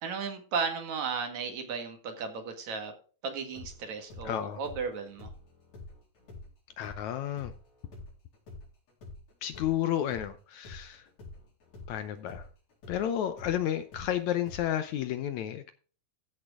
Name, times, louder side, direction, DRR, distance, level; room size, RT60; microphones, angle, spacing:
voice 1, 0.0-2.9 3.2-5.3, right 5 dB, 60° right, 5 dB, 3.0 m, -35 dB
sound 1, 3.4-10.3 10.6-14.9, left 3 dB, 55° left, 5.5 m, -47 dB
voice 2, 4.3-4.6 6.8-7.5 9.4-11.0 11.9-12.5 12.9-15.7, left 11 dB, 75° left, 10 dB, 1.9 m, -31 dB
14.5 x 6.5 x 3.6 m, 0.38 s
omnidirectional pair, 3.8 m